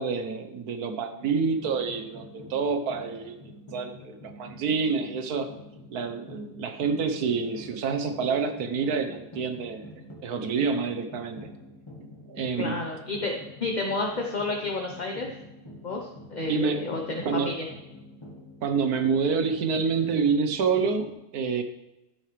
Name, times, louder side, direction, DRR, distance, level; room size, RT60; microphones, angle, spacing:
voice 1, 0.0-5.5 5.9-9.8 10.2-11.5 12.0-12.8 16.5-17.6 18.6-21.6, right 5 dB, 70° right, 7 dB, 1.5 m, -28 dB
sound 1, 1.2-21.1, left 1 dB, 20° left, 1.5 m, -47 dB
voice 2, 12.6-13.3 13.6-15.3 15.8-17.7, left 3 dB, 35° left, 1 dB, 0.9 m, -30 dB
12.5 x 9.0 x 3.3 m, 0.97 s
omnidirectional pair, 1.7 m